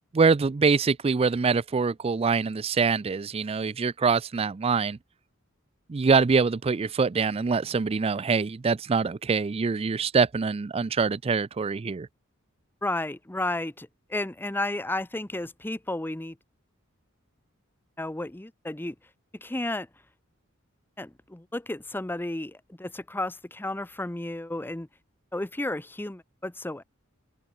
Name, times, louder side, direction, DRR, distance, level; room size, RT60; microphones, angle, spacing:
voice 1, 0.1-5.0 5.9-12.1, right 5 dB, 30° right, 0.4 m, -24 dB
voice 2, 12.8-16.4 18.0-18.9 19.4-19.9 21.0-24.9 25.3-26.8, left 2 dB, 10° left, 0.7 m, -32 dB
open air
head